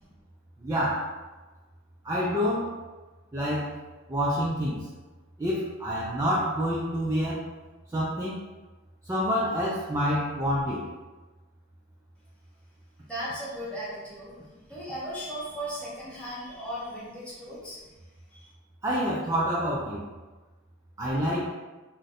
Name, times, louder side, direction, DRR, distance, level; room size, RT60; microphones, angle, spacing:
voice 1, 0.6-1.1 2.0-2.8 3.3-3.8 4.1-4.9 5.4-7.4 7.9-8.4 9.0-10.9 18.8-20.1 21.0-21.5, equal, 15° right, -6 dB, 0.3 m, -27 dB
voice 2, 13.0-14.4 14.7-17.8 18.3-18.5, equal, 5° left, -9 dB, 1.0 m, -37 dB
2.5 x 2.1 x 4.0 m, 1.2 s
head